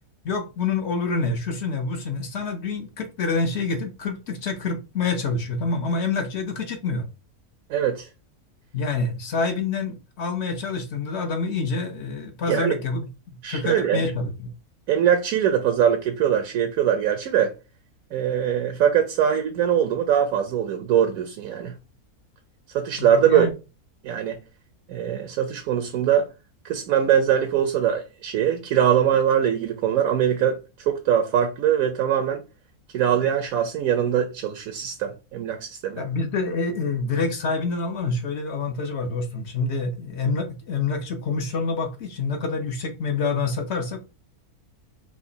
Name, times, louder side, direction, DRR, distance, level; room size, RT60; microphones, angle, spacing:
voice 1, 0.2-7.1 8.7-13.1 13.5-14.5 23.0-23.5 36.0-44.0, left 4 dB, 55° left, 0.8 m, -27 dB
voice 2, 7.7-8.1 12.5-12.7 13.4-14.0 14.9-17.5 18.1-21.7 22.7-23.5 24.0-24.4 24.9-26.3 26.6-32.4 32.9-36.0, right 9 dB, 75° right, 1.0 m, -22 dB
4.9 x 2.9 x 2.7 m
omnidirectional pair, 1.6 m